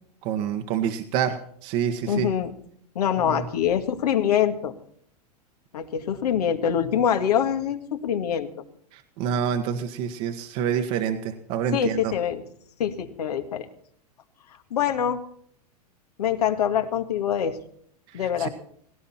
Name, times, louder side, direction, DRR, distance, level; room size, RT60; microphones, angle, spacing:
voice 1, 0.2-2.3 3.2-3.4 8.9-12.1 18.1-18.5, right 8 dB, 50° right, 6 dB, 1.5 m, -27 dB
voice 2, 2.1-2.5 3.0-4.7 5.7-8.5 11.7-12.4 12.8-13.7 14.7-15.2 16.2-17.6 18.1-18.5, left 9 dB, 75° left, 6 dB, 2.0 m, -24 dB
17.5 x 17.0 x 4.4 m, 0.63 s
hypercardioid pair, 105°, 20 cm